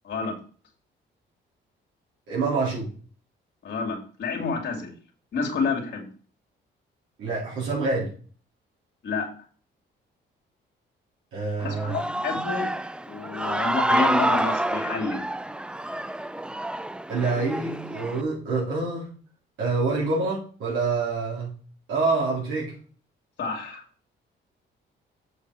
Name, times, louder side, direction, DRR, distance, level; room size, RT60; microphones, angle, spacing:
voice 1, 0.0-0.4 3.6-4.9 5.3-6.1 9.0-9.3 11.6-12.7 13.1-15.2 23.4-23.8, left 4 dB, 65° left, 0 dB, 2.5 m, -29 dB
voice 2, 2.3-2.9 7.2-8.1 11.3-12.0 17.1-19.1 19.6-21.5 21.9-22.7, right 3 dB, 80° right, -7 dB, 4.2 m, -26 dB
Human voice / Cheering, 11.6-18.2, right 1 dB, 5° right, 0.4 m, -28 dB
7.8 x 6.0 x 4.8 m, 0.41 s
cardioid pair, 90°, 20 cm